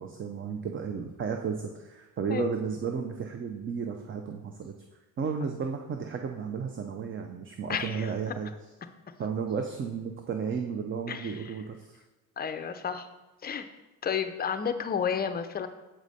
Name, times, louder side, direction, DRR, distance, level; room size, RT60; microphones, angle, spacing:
voice 1, 0.0-4.7 5.2-8.5 9.2-12.0, right 6 dB, 30° right, 4 dB, 0.5 m, -33 dB
voice 2, 7.7-8.1 11.1-11.4 12.4-13.1 13.4-13.6 14.0-15.7, left 7 dB, 25° left, 8 dB, 0.5 m, -31 dB
7.5 x 4.8 x 4.0 m, 1.1 s
cardioid pair, 120°, 38 cm